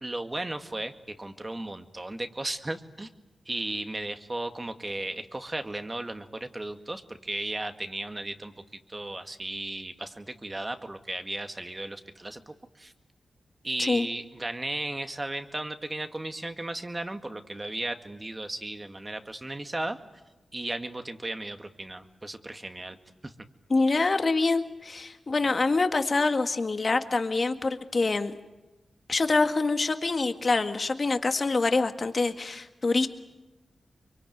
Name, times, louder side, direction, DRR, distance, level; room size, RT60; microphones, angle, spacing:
voice 1, 0.0-0.9 1.2-3.1 3.5-8.5 8.9-12.9 13.6-20.0 20.5-23.0 23.2-23.3 25.3-25.5, right 2 dB, 30° right, 7 dB, 2.0 m, -35 dB
voice 2, 23.7-28.3 29.1-33.1, left 3 dB, 50° left, 8 dB, 1.8 m, -25 dB
24.5 x 23.5 x 9.4 m, 1.1 s
cardioid pair, 45°, 0 cm